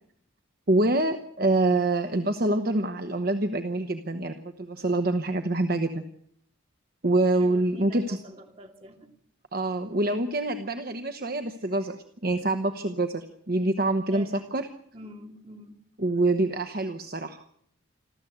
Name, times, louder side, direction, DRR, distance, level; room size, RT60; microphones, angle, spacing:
voice 1, 0.7-6.0 7.0-8.2 9.5-12.0 12.2-14.7 16.0-17.4, right 2 dB, 45° right, 7 dB, 1.1 m, -26 dB
voice 2, 7.4-9.1 14.1-14.5 14.9-15.8, right 1 dB, 30° right, 3 dB, 2.6 m, -46 dB
27.5 x 13.5 x 8.0 m, 0.69 s
head